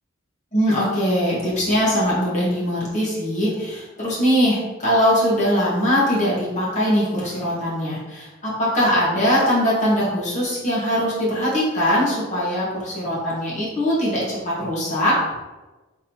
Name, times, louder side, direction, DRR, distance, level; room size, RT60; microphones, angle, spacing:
voice 1, 0.5-15.2, equal, 35° left, -7 dB, 1.5 m, -21 dB
3.7 x 3.1 x 4.4 m, 1.1 s
head